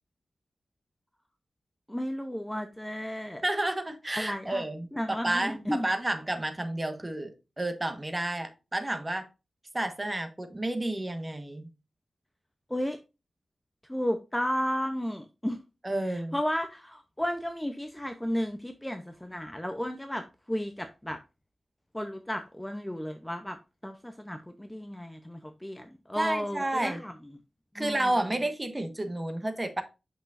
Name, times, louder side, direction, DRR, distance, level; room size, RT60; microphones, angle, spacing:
voice 1, 1.9-3.4 4.2-4.6 4.9-5.9 12.7-13.0 13.9-15.6 16.0-21.2 21.9-23.6 23.8-27.1 27.8-28.1, equal, 5° left, 0.6 m, -33 dB
voice 2, 3.4-9.3 9.7-11.6 15.8-16.3 26.2-27.0 27.7-29.8, right 1 dB, 20° right, 1.3 m, -31 dB
8.2 x 6.0 x 2.5 m
wide cardioid pair, 135°, 0 cm